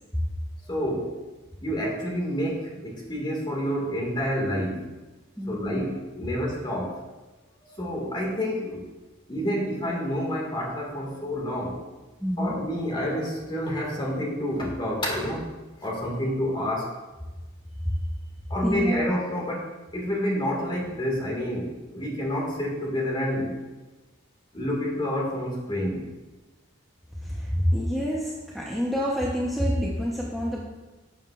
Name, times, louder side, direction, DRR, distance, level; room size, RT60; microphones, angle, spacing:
voice 1, 0.6-1.1 1.6-4.9 5.5-7.0 7.7-8.8 9.3-11.8 12.4-15.5 15.8-16.9 18.5-19.7 19.9-23.6 24.5-26.1, equal, 25° left, -2 dB, 1.9 m, -28 dB
voice 2, 5.4-5.8 12.2-12.6 17.8-17.9 18.6-19.1 27.2-30.6, equal, ahead, -5 dB, 0.8 m, -27 dB
11.0 x 7.3 x 2.4 m, 1.2 s
head